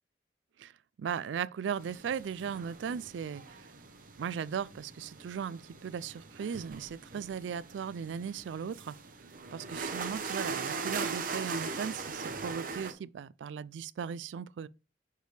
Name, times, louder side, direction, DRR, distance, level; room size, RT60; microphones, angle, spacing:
voice 1, 1.0-3.7 4.2-8.9 9.5-14.7, right 7 dB, 85° right, 0.3 m, -37 dB
sound 1, 1.8-12.9, right 4 dB, 50° right, 0.8 m, -40 dB
6.5 x 5.0 x 3.2 m
head